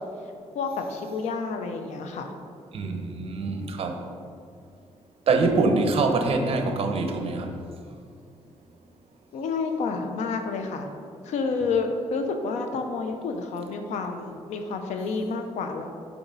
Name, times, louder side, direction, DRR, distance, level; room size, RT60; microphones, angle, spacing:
voice 1, 0.5-2.3 9.3-10.9 11.2-15.9, left 4 dB, 80° left, 6 dB, 0.7 m, -29 dB
voice 2, 2.7-4.0 5.3-7.5, right 3 dB, 55° right, 5 dB, 0.8 m, -24 dB
7.1 x 4.9 x 4.0 m, 2.3 s
cardioid pair, 110°, 12 cm